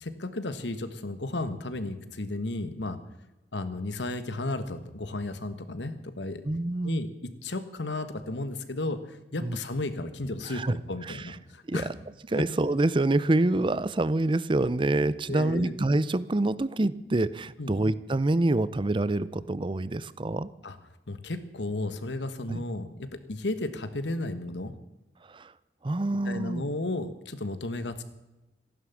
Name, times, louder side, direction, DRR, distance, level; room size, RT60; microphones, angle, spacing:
voice 1, 0.0-3.0 3.5-6.4 6.8-11.9 12.3-12.4 15.3-15.8 17.6-17.8 20.6-20.8 21.1-24.7 26.2-28.0, left 2 dB, 90° left, 11 dB, 1.4 m, -34 dB
voice 2, 6.4-7.0 9.4-9.6 10.5-10.8 11.0-11.3 11.7-11.8 12.3-20.5 22.5-22.6 25.3-25.5 25.8-26.6, right 2 dB, 30° right, 18 dB, 0.6 m, -26 dB
15.0 x 11.0 x 7.1 m, 1.1 s
head